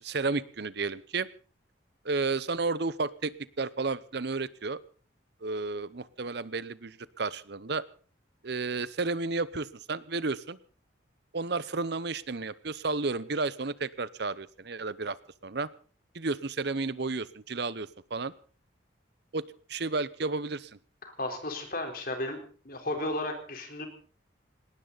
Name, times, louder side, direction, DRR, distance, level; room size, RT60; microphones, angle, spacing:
voice 1, 0.0-1.3 2.0-4.8 5.4-7.8 8.4-10.6 11.3-15.2 15.4-15.7 16.1-18.3 19.3-19.4 19.7-20.7, right 3 dB, 60° right, 17 dB, 0.8 m, -32 dB
voice 2, 21.0-22.4 22.6-23.9, left 1 dB, 50° left, 4 dB, 4.0 m, -34 dB
19.5 x 18.5 x 4.1 m, 0.40 s
head